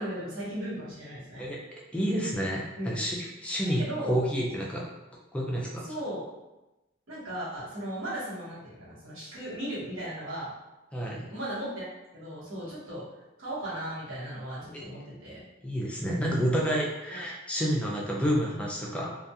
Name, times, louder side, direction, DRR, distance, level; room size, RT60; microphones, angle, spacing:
voice 1, 0.0-1.5 2.8-3.0 3.7-4.2 5.8-6.2 7.1-10.5 11.3-11.9 12.1-13.0 13.4-15.4 17.1-17.3, right 1 dB, 90° right, -8 dB, 1.1 m, -36 dB
voice 2, 1.9-4.9 5.3-5.9 10.9-11.3 14.7-14.9 15.6-19.2, equal, 5° left, -3 dB, 0.3 m, -29 dB
2.3 x 2.3 x 2.7 m, 0.99 s
head